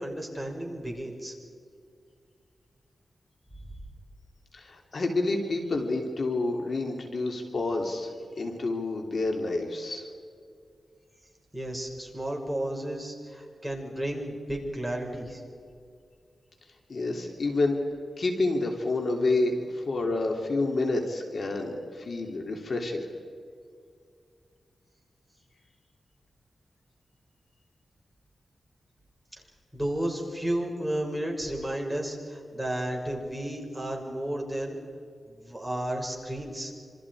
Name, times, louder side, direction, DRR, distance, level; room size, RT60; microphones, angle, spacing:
voice 1, 0.0-1.3 11.5-15.4 29.7-34.8 35.3-36.7, right 1 dB, 5° right, 0 dB, 6.2 m, -32 dB
voice 2, 4.5-8.1 8.4-10.1 16.9-17.8 18.2-23.1, left 2 dB, 60° left, 2 dB, 3.1 m, -28 dB
27.5 x 27.0 x 5.0 m, 2.2 s
wide cardioid pair, 85°, 0 cm